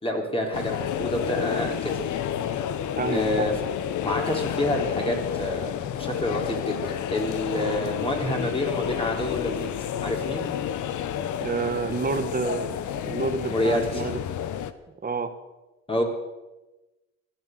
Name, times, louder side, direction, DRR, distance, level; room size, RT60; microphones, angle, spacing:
voice 1, 0.0-2.0 3.1-3.5 4.0-9.7 10.0-10.5 13.5-14.1 15.9-16.0, left 1 dB, 20° left, 1 dB, 4.1 m, -28 dB
sound 1, 0.5-14.7, left 9 dB, 75° left, 1.0 m, -30 dB
voice 2, 3.0-3.5 7.5-7.7 11.4-14.2 15.0-15.3, right 4 dB, 30° right, 9 dB, 1.7 m, -29 dB
15.5 x 11.5 x 8.0 m, 1.1 s
cardioid pair, 90°, 30 cm